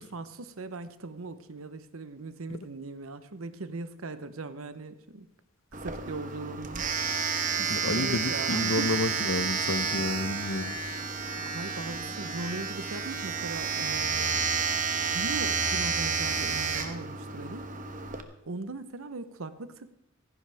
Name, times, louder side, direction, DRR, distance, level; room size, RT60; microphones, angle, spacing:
voice 1, 0.0-5.3 5.7-6.9 7.6-8.9 11.5-14.4 15.1-17.7 18.5-19.9, right 3 dB, 80° right, 12 dB, 0.9 m, -39 dB
Domestic sounds home sounds, 5.7-18.2, right 5 dB, 40° right, 1.1 m, -30 dB
voice 2, 7.7-10.7, left 2 dB, 70° left, 13 dB, 0.8 m, -30 dB
15.5 x 15.5 x 3.5 m, 0.77 s
head